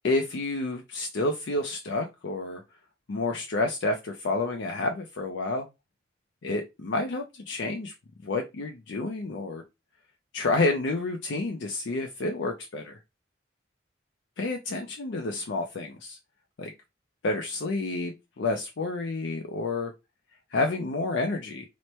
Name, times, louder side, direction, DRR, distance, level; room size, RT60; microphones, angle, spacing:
voice 1, 0.0-2.6 3.1-5.7 6.4-7.9 8.2-9.6 10.3-13.0 14.4-16.2 16.6-16.7 17.2-19.9 20.5-21.6, left 2 dB, 70° left, 3 dB, 0.5 m, -29 dB
3.0 x 2.1 x 4.2 m, 0.23 s
head